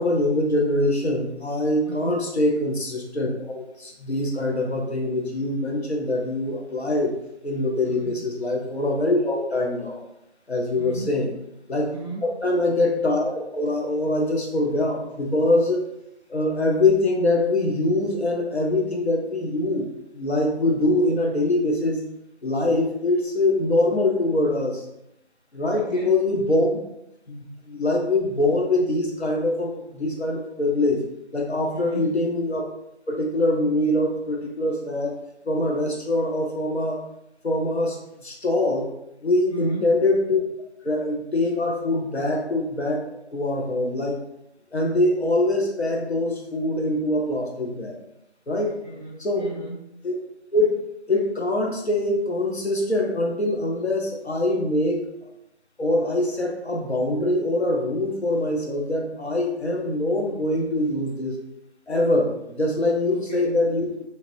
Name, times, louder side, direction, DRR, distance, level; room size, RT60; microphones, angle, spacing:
voice 1, 0.0-7.1 7.4-10.0 10.5-11.3 11.7-11.9 12.4-15.8 16.3-22.0 22.4-24.8 25.5-26.7 27.3-31.0 31.3-32.6 33.1-35.1 35.5-37.0 37.4-38.0 38.2-38.9 39.2-40.4 40.8-44.2 44.7-48.0 48.5-48.8 49.2-49.5 50.0-50.1 50.5-50.8 51.1-55.0 55.8-61.4 61.9-63.9, left 2 dB, 70° left, 0 dB, 0.8 m, -23 dB
voice 2, 1.8-2.2 7.8-8.3 10.8-11.1 11.9-12.3 25.7-26.1 31.7-32.2 39.5-40.0 48.8-49.8 63.1-63.6, right 2 dB, 40° left, -7 dB, 0.9 m, -36 dB
2.9 x 2.4 x 3.0 m, 0.83 s
figure-of-eight pair, 175°, 34 cm